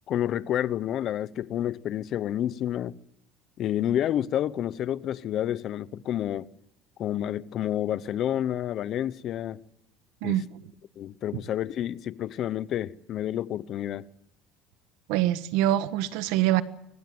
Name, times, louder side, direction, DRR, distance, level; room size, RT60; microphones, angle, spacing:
voice 1, 0.1-2.9 3.6-6.5 7.0-9.6 10.2-10.4 11.0-14.0, left 11 dB, 45° left, 0.8 m, -29 dB
voice 2, 15.1-16.6, right 13 dB, 75° right, 1.4 m, -24 dB
23.5 x 19.0 x 7.8 m
cardioid pair, 135°, 0 cm